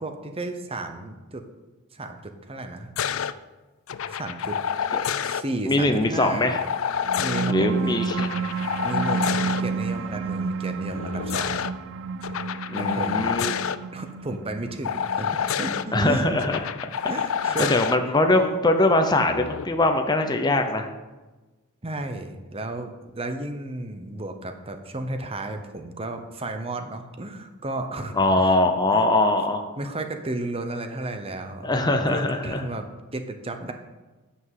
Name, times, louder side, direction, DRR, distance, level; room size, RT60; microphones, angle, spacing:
voice 1, 0.0-1.4 1.9-2.9 4.1-4.6 5.2-6.6 7.2-8.0 8.8-11.7 12.8-13.4 13.9-16.3 17.1-17.8 21.8-28.6 28.9-29.1 29.8-33.7, right 2 dB, 25° right, 6 dB, 0.9 m, -33 dB
sound 1, 3.0-3.3 3.9-5.4 6.5-7.5 8.1-9.6 10.9-11.7 12.2-13.8 14.8-15.8 16.4-18.0 19.3-19.6, left 7 dB, 65° left, 0.4 m, -28 dB
voice 2, 5.7-6.6 7.5-8.3 12.7-13.6 15.9-16.6 17.7-20.9 28.1-29.7 31.6-32.6, left 2 dB, 20° left, 5 dB, 0.7 m, -22 dB
sound 2, 6.9-17.9, right 4 dB, 60° right, 0.4 m, -31 dB
9.6 x 5.7 x 7.5 m, 1.2 s
head